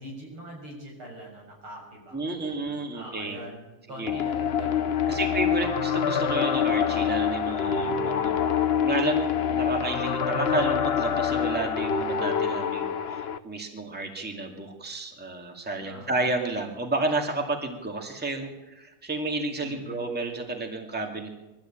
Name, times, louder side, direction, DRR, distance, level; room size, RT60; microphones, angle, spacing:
voice 1, 0.0-5.8 7.7-8.8 9.3-9.6 15.8-16.3 19.6-20.0, equal, 85° right, -1 dB, 7.5 m, -44 dB
voice 2, 2.1-3.4 4.0-4.1 5.1-8.4 8.8-21.4, right 2 dB, 5° right, 3 dB, 2.2 m, -31 dB
sound 1, 4.1-13.4, left 7 dB, 85° left, 0.5 m, -26 dB
22.5 x 14.0 x 8.8 m, 1.0 s
omnidirectional pair, 2.3 m